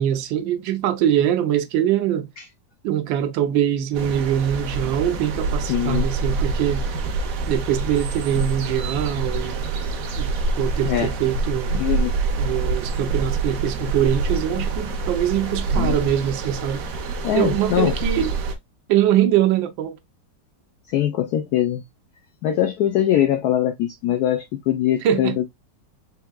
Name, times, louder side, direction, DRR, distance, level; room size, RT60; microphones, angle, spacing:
voice 1, 0.0-2.3 2.8-6.9 7.5-9.6 10.2-10.3 10.6-11.7 12.4-16.8 17.3-18.3 18.9-20.0 25.0-25.3, right 10 dB, 85° right, 1.4 m, -23 dB
sound 1, 3.9-18.6, right 3 dB, 60° right, 1.0 m, -26 dB
voice 2, 5.7-6.1 10.8-11.1 11.7-12.1 15.7-16.0 17.2-17.9 20.9-21.8 22.4-25.4, left 11 dB, 70° left, 1.0 m, -22 dB
4.5 x 3.5 x 2.2 m
omnidirectional pair, 2.0 m